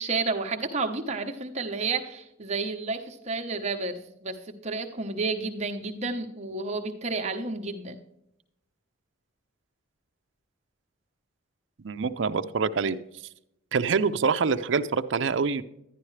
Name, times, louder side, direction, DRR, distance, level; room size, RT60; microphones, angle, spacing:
voice 1, 0.0-8.0, right 3 dB, 35° right, 4 dB, 0.9 m, -31 dB
voice 2, 11.8-13.0 13.7-15.6, right 5 dB, 65° right, 10 dB, 0.5 m, -25 dB
11.0 x 10.5 x 3.2 m, 0.80 s
head